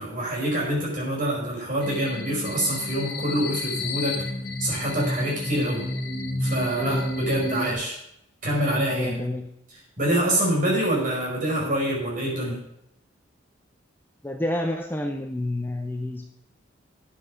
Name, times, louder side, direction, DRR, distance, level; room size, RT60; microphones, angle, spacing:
voice 1, 0.0-4.2 4.6-5.9 6.4-8.0 8.4-9.2 10.0-12.6, right 1 dB, 40° right, -3 dB, 5.4 m, -26 dB
sound 1, 1.8-7.7, left 1 dB, 50° left, 2.4 m, -30 dB
voice 2, 8.9-9.5 14.2-16.2, left 1 dB, 10° left, 3 dB, 0.8 m, -29 dB
10.0 x 8.2 x 6.4 m, 0.77 s
head